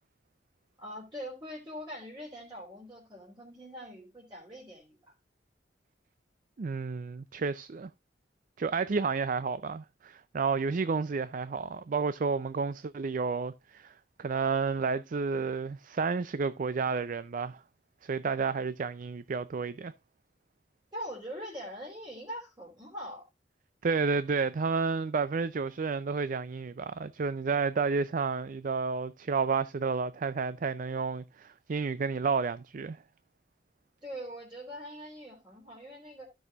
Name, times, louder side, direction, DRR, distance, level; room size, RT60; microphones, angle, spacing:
voice 1, 0.8-5.0 20.9-23.2 34.0-36.3, equal, 25° right, 3.4 m, -43 dB
voice 2, 6.6-7.9 8.6-13.9 14.2-17.6 18.0-19.9 23.8-33.0, right 5 dB, 50° right, 0.4 m, -31 dB
15.0 x 6.3 x 2.4 m
head